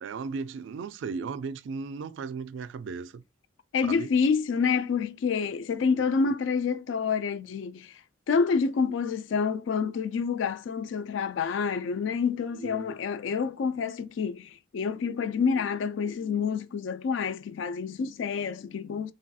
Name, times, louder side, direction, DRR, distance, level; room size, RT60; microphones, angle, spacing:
voice 1, 0.0-3.2 3.8-4.1 12.5-13.0, right 5 dB, 65° right, 0.3 m, -36 dB
voice 2, 3.7-7.9 8.3-19.1, left 5 dB, 65° left, 0.3 m, -28 dB
3.2 x 2.3 x 2.6 m
head